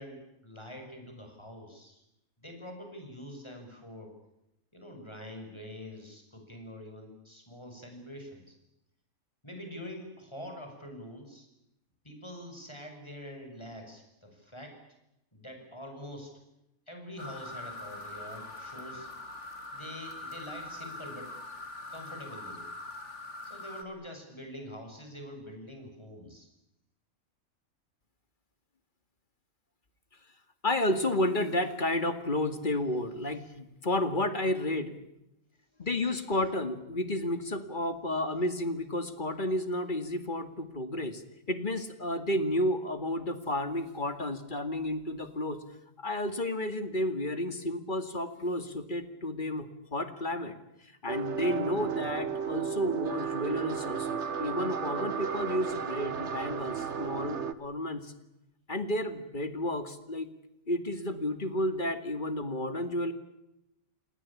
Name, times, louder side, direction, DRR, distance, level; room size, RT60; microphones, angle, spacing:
voice 1, 0.0-2.0 2.4-4.1 4.7-8.6 9.4-11.5 12.0-14.8 15.3-16.4 16.9-19.1 19.7-21.3 21.9-22.7 23.4-26.5, equal, 20° left, 3 dB, 6.1 m, -45 dB
sound 1, 17.2-23.8, left 2 dB, 55° left, 2.9 m, -43 dB
voice 2, 30.6-34.9 35.8-41.2 41.5-45.6 46.0-50.6 51.0-58.1 58.7-60.3 60.7-63.1, left 1 dB, 35° left, 10 dB, 2.4 m, -31 dB
sound 2, 51.1-57.5, right 7 dB, 55° right, 1.5 m, -34 dB
28.5 x 20.0 x 8.6 m, 0.88 s
omnidirectional pair, 1.5 m